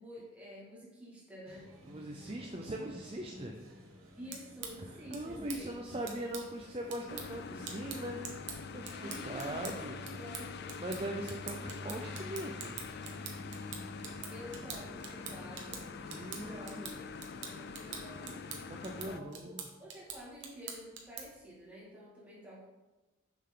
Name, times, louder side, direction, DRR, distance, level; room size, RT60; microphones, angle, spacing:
voice 1, 0.0-1.7 3.3-3.4 4.2-6.0 9.0-10.8 14.3-15.8 16.4-18.4 19.0-22.7, equal, 5° right, -7 dB, 2.1 m, -50 dB
sound 1, 1.5-16.6, equal, 85° right, 1.9 m, -55 dB
voice 2, 1.9-3.6 5.1-8.2 8.7-8.9 9.2-10.0 10.8-12.8 16.1-17.0 18.7-19.7, right 1 dB, 25° right, 1 dB, 0.5 m, -40 dB
sound 2, 4.1-21.5, right 6 dB, 55° right, 1.1 m, -47 dB
sound 3, 7.1-19.2, left 4 dB, 50° left, 0.3 m, -44 dB
6.8 x 6.7 x 3.8 m, 1.1 s
head